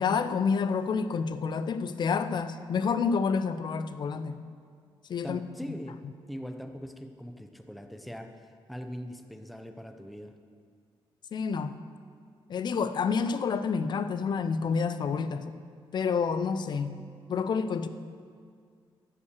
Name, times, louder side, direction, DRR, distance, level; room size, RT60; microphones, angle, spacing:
voice 1, 0.0-4.4 5.1-5.4 11.3-11.8 12.5-15.5 15.9-17.0 17.3-17.9, left 5 dB, 50° left, 12 dB, 0.5 m, -28 dB
voice 2, 5.2-6.0 6.3-10.3, equal, ahead, 6 dB, 0.6 m, -41 dB
14.0 x 5.7 x 6.6 m, 2.1 s
wide cardioid pair, 145°, 9 cm